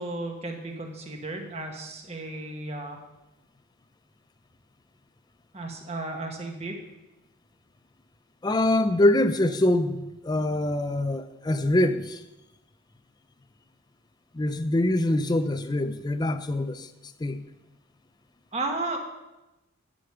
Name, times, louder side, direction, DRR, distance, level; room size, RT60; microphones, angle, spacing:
voice 1, 0.0-3.0 5.5-6.7 18.5-19.0, right 2 dB, 30° right, 2 dB, 1.3 m, -34 dB
voice 2, 8.4-10.0 10.2-12.2 14.3-16.9 17.2-17.4, left 1 dB, 20° left, 10 dB, 0.4 m, -24 dB
11.5 x 5.1 x 6.9 m, 1.0 s
head